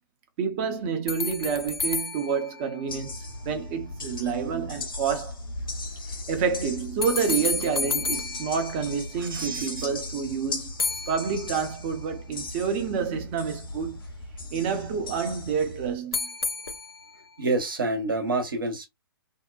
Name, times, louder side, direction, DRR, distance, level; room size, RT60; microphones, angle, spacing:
voice 1, 0.4-5.4 6.3-10.7 11.1-14.1 14.5-16.3, right 6 dB, 30° right, 0.6 m, -28 dB
sound 1, 1.1-3.5 7.0-9.5 10.8-12.0 16.1-17.3, left 4 dB, 85° left, 0.4 m, -32 dB
sound 2, 2.9-16.0, left 2 dB, 65° left, 1.0 m, -38 dB
voice 2, 9.2-9.9 17.4-18.9, right 2 dB, 65° right, 0.9 m, -28 dB
2.7 x 2.1 x 2.3 m
figure-of-eight pair, 120°, 12 cm